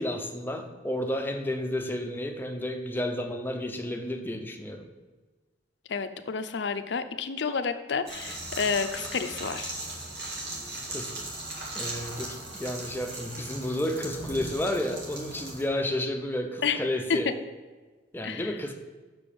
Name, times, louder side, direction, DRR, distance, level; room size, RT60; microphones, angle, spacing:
voice 1, 0.0-4.9 10.9-11.1 11.7-17.3 18.1-18.8, left 1 dB, 10° left, 4 dB, 0.6 m, -31 dB
voice 2, 5.9-9.7 16.6-17.2 18.2-18.5, left 5 dB, 65° left, 10 dB, 0.5 m, -30 dB
sound 1, 8.1-15.6, right 2 dB, 65° right, 2.0 m, -38 dB
6.1 x 5.3 x 6.8 m, 1.3 s
head